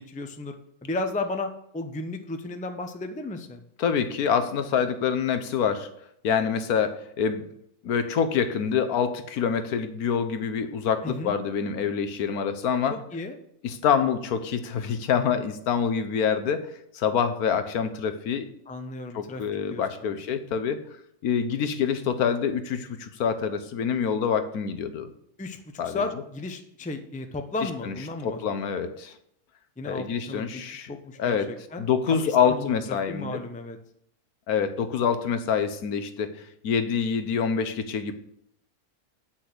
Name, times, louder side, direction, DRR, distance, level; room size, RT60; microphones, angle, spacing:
voice 1, 0.1-0.5 0.8-3.6 11.0-11.3 12.9-13.4 18.7-19.4 19.7-20.1 25.4-28.4 29.8-30.6 30.9-33.8, left 2 dB, 10° left, 6 dB, 0.4 m, -34 dB
voice 2, 3.8-5.9 6.2-7.4 7.8-13.0 13.6-16.7 16.9-18.5 19.1-20.8 21.2-25.1 25.8-26.0 27.6-27.9 28.2-29.1 29.8-30.9 31.2-31.5 31.8-33.4 34.5-38.1, left 7 dB, 75° left, 10 dB, 1.4 m, -26 dB
8.2 x 6.1 x 6.0 m, 0.73 s
omnidirectional pair, 1.6 m